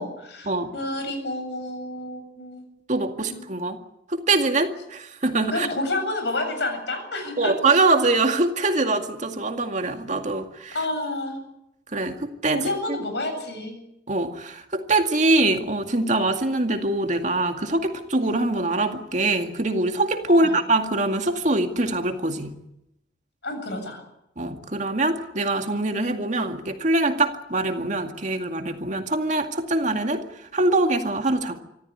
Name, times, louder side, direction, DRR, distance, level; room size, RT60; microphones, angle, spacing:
voice 1, 0.0-2.7 3.3-3.4 5.5-7.5 10.7-11.4 12.5-13.8 20.3-20.6 23.4-24.0, left 2 dB, 70° left, 6 dB, 7.8 m, -29 dB
voice 2, 2.9-3.8 4.1-5.7 7.4-10.7 11.9-12.6 12.9-13.0 14.1-22.5 24.4-30.2 30.5-31.6, right 2 dB, 45° right, 5 dB, 2.2 m, -23 dB
25.5 x 14.0 x 9.8 m, 0.82 s
head